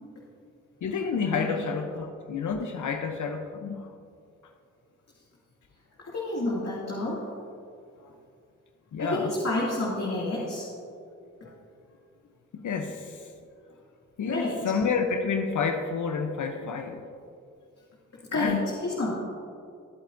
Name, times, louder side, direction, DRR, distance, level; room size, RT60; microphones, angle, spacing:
voice 1, 0.8-3.9 8.9-9.3 11.4-11.6 12.5-13.3 14.2-17.0 18.3-18.7, left 5 dB, 70° left, 5 dB, 0.8 m, -29 dB
voice 2, 6.0-7.3 9.0-10.7 14.2-14.6 18.3-19.1, left 2 dB, 55° left, -5 dB, 2.4 m, -29 dB
21.5 x 8.3 x 2.7 m, 2.4 s
cardioid pair, 50°, 31 cm